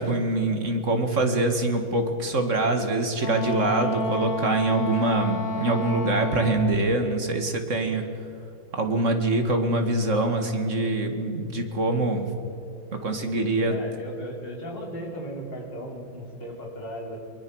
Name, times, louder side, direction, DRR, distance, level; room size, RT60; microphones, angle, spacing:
voice 1, 0.0-8.1 8.7-12.3 12.9-13.8, right 2 dB, 40° right, 5 dB, 2.1 m, -24 dB
Wind instrument woodwind instrument, 3.2-6.9, left 2 dB, 45° left, 2.8 m, -30 dB
voice 2, 13.4-17.2, equal, 65° left, -1 dB, 4.5 m, -37 dB
22.5 x 22.5 x 6.3 m, 2.7 s
omnidirectional pair, 2.1 m